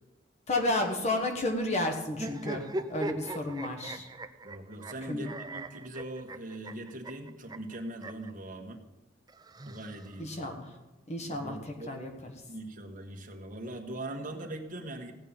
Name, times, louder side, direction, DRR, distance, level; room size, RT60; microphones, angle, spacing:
voice 1, 0.5-4.1 5.1-5.3 10.2-10.7 11.1-11.6 11.9-12.3, left 2 dB, 40° left, 4 dB, 1.4 m, -32 dB
sound 1, 2.1-8.3 9.3-10.4, right 2 dB, 20° right, 0.5 m, -40 dB
voice 2, 4.4-8.8 9.6-10.4 11.3-11.9 12.5-15.1, right 1 dB, 45° right, 2 dB, 1.5 m, -41 dB
16.0 x 5.5 x 8.9 m, 1.0 s
head